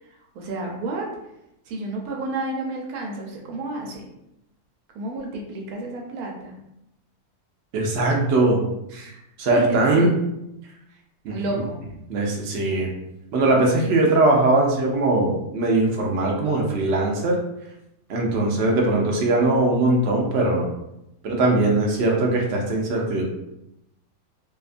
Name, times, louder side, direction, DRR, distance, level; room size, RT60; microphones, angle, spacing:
voice 1, 0.3-1.1 1.7-4.0 4.9-6.5 8.9-9.2 9.5-10.3 11.3-11.8, right 2 dB, 80° right, 0 dB, 1.1 m, -31 dB
voice 2, 7.7-8.6 9.4-10.1 11.2-11.4 12.1-12.9 13.3-17.4 18.1-20.7 21.2-23.2, right 2 dB, 60° right, -1 dB, 0.7 m, -20 dB
2.7 x 2.3 x 2.4 m, 0.85 s
omnidirectional pair, 1.6 m